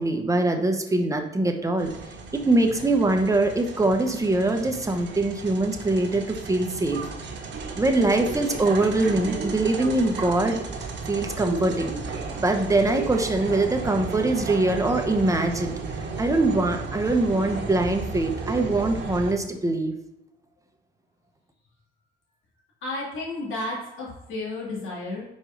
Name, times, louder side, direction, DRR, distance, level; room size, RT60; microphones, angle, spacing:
voice 1, 0.0-1.9 2.3-7.0 7.8-10.6 11.1-11.9 12.4-19.9, right 2 dB, 15° right, 5 dB, 1.0 m, -23 dB
sound 1, 1.8-19.3, right 4 dB, 65° right, 1.4 m, -34 dB
voice 2, 22.8-25.2, left 2 dB, 85° left, -5 dB, 2.5 m, -32 dB
5.3 x 4.8 x 5.1 m, 0.93 s
cardioid pair, 90°, 20 cm